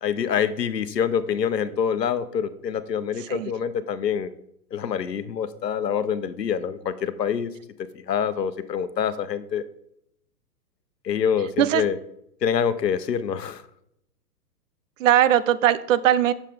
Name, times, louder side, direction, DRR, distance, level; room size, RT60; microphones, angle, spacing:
voice 1, 0.0-4.3 4.7-7.5 8.1-9.6 11.0-12.0 12.4-13.6, left 7 dB, 85° left, 13 dB, 1.0 m, -26 dB
voice 2, 15.0-16.3, right 11 dB, 55° right, 15 dB, 0.7 m, -19 dB
9.9 x 7.3 x 3.6 m, 0.76 s
hypercardioid pair, 125°, 48 cm